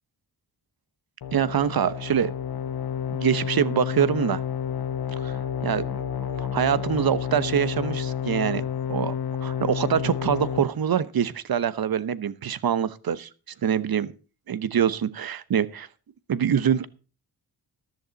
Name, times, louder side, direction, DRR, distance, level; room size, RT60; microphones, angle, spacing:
sound 1, 1.2-10.6, left 8 dB, 65° left, 1.1 m, -30 dB
voice 1, 1.3-2.3 3.1-4.4 5.2-6.0 6.4-9.1 9.4-13.3 13.6-14.1 14.5-15.9 16.3-16.9, right 8 dB, 60° right, 16 dB, 0.9 m, -25 dB
13.5 x 11.0 x 4.0 m, 0.35 s
wide cardioid pair, 100°, 40 cm